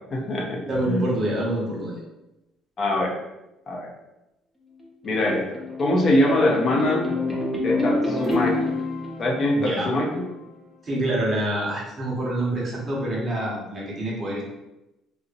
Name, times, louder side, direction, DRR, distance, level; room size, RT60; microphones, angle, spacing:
voice 1, 0.1-1.1 2.8-3.2 3.7-3.9 5.0-7.0 7.6-8.7 9.2-10.2, left 1 dB, 45° left, -1 dB, 0.6 m, -23 dB
voice 2, 0.7-2.0 9.5-9.9 10.8-14.4, right 1 dB, 40° right, -4 dB, 1.1 m, -26 dB
sound 1, 4.8-10.4, left 2 dB, ahead, 0.7 m, -28 dB
2.6 x 2.0 x 2.5 m, 0.95 s
supercardioid pair, 75°, 0 cm